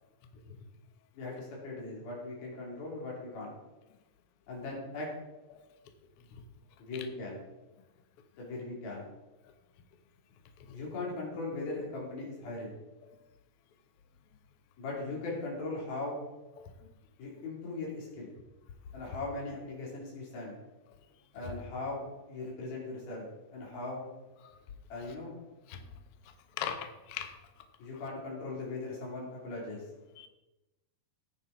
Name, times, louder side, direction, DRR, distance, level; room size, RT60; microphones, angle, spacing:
voice 1, 1.1-3.5 4.5-5.1 6.8-7.4 8.4-9.1 10.7-12.8 14.8-16.2 17.2-18.4 18.9-20.6 21.3-23.3 23.5-24.1 24.9-25.4 27.8-29.8, left 2 dB, 70° left, -3 dB, 5.4 m, -39 dB
voice 2, 26.6-27.4 30.2-30.3, left 9 dB, 90° left, 7 dB, 1.2 m, -39 dB
15.0 x 9.1 x 4.4 m, 1.1 s
omnidirectional pair, 4.4 m